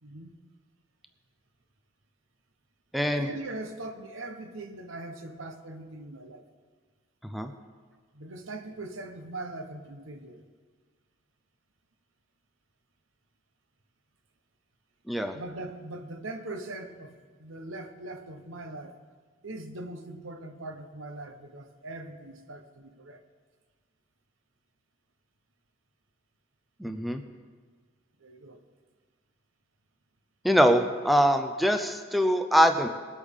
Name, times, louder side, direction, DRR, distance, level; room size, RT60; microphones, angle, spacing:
voice 1, 0.0-0.4 3.2-6.5 8.1-10.4 15.3-19.0 19.4-23.2 28.2-28.6, right 2 dB, 75° right, 1.0 m, -41 dB
voice 2, 2.9-3.3 7.2-7.5 15.1-15.4 26.8-27.2 30.4-32.9, equal, ahead, 0.5 m, -23 dB
21.0 x 8.3 x 3.7 m
head